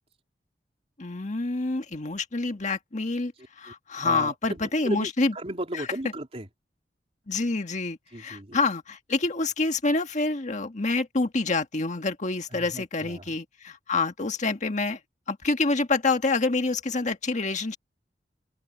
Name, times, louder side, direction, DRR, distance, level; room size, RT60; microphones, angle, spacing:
voice 1, 1.0-3.3 3.6-5.3 7.3-15.0 15.3-17.8, left 3 dB, 45° left, 1.6 m, -27 dB
voice 2, 4.0-6.5 8.1-8.6 12.5-13.3, right 1 dB, 35° right, 3.5 m, -35 dB
open air
head